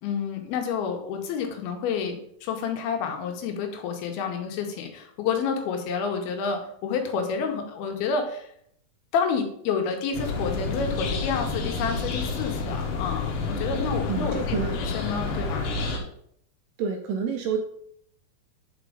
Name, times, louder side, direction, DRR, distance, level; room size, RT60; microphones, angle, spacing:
voice 1, 0.0-8.5 9.1-15.6, left 6 dB, 90° left, 4 dB, 2.9 m, -29 dB
sound 1, 10.1-16.0, left 3 dB, 70° left, 2.3 m, -29 dB
voice 2, 14.1-14.8 16.8-17.6, right 6 dB, 85° right, 4 dB, 2.0 m, -28 dB
5.4 x 5.1 x 4.9 m, 0.69 s
omnidirectional pair, 4.3 m